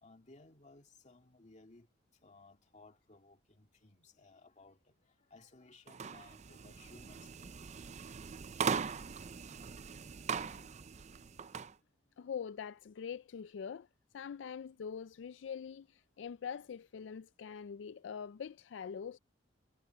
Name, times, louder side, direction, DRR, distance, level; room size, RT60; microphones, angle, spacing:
voice 1, 0.0-1.9 2.2-7.6 11.7-11.8, left 3 dB, 40° left, 2.2 m, -60 dB
sound 1, 5.9-11.7, right 6 dB, 40° right, 0.5 m, -40 dB
voice 2, 12.2-13.9 14.1-19.2, left 7 dB, 75° left, 0.4 m, -44 dB
head